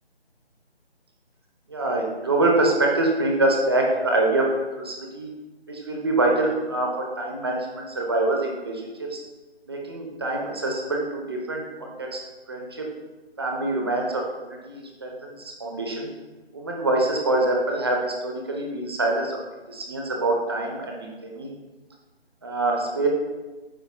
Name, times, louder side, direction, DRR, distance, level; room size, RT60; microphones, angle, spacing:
voice 1, 1.7-4.5 4.8-5.3 5.7-9.2 9.7-12.2 12.5-12.9 13.4-16.1 16.5-19.4 19.7-21.5 22.4-23.1, right 2 dB, 25° right, 0 dB, 0.9 m, -25 dB
13.0 x 4.7 x 2.3 m, 1.2 s
figure-of-eight pair, 160°, 33 cm